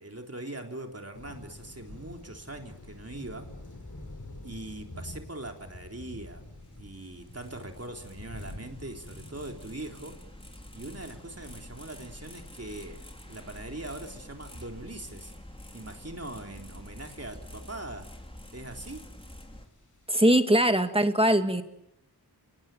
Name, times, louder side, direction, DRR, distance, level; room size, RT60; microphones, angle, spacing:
voice 1, 0.0-3.5 4.4-6.4 6.8-10.2 10.7-15.3 15.7-18.1 18.5-19.0, right 2 dB, 35° right, 3 dB, 3.7 m, -41 dB
sound 1, 1.1-14.9 15.2-15.9 16.2-20.7, left 2 dB, 50° left, 4.7 m, -48 dB
sound 2, 6.2-19.7, left 1 dB, 15° left, 3.5 m, -47 dB
voice 2, 20.1-21.6, right 1 dB, 15° right, 8 dB, 2.3 m, -21 dB
29.5 x 19.0 x 9.2 m, 0.82 s
wide cardioid pair, 50°, 40 cm